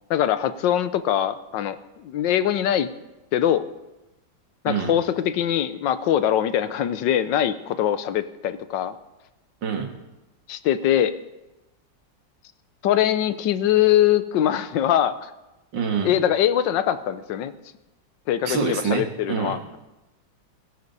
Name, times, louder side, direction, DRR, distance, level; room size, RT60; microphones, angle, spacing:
voice 1, 0.1-2.9 3.3-3.7 4.6-8.9 10.5-11.1 12.8-15.3 16.0-17.5 18.3-19.8, left 11 dB, 80° left, 13 dB, 1.4 m, -22 dB
voice 2, 9.6-9.9 15.7-16.1 18.5-19.6, right 6 dB, 75° right, 4 dB, 2.3 m, -26 dB
21.5 x 11.0 x 4.1 m, 1.0 s
omnidirectional pair, 2.0 m